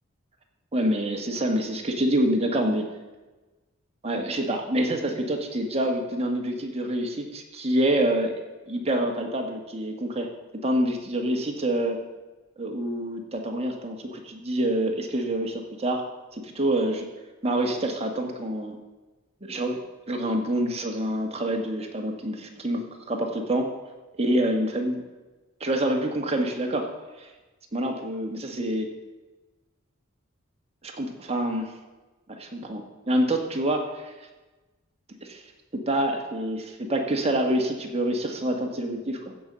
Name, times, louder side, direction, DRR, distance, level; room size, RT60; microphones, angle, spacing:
voice 1, 0.7-2.9 4.0-8.3 8.7-10.3 10.6-12.0 12.6-16.0 16.3-17.1 17.4-18.8 19.4-19.8 20.1-23.7 24.2-25.0 25.6-26.9 27.2-27.3 27.7-28.9 30.8-31.7 32.3-34.1 35.2-35.4 35.7-39.3, right 1 dB, 30° right, 2 dB, 1.7 m, -26 dB
15.0 x 5.5 x 7.5 m, 1.2 s
head